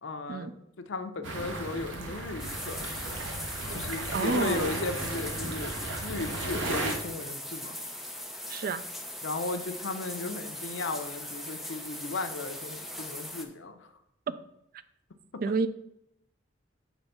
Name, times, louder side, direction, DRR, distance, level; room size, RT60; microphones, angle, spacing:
voice 1, 0.0-2.9 3.7-5.7 6.0-7.8 9.2-13.9 15.3-15.4, left 3 dB, 75° left, 8 dB, 0.7 m, -35 dB
sound 1, 1.2-6.9, right 2 dB, 80° right, 1.1 m, -35 dB
sound 2, 2.4-13.5, left 1 dB, ahead, 0.6 m, -40 dB
voice 2, 4.1-4.7 8.5-8.8 15.4-15.7, right 4 dB, 50° right, 13 dB, 0.4 m, -29 dB
7.1 x 3.4 x 5.5 m, 0.78 s
head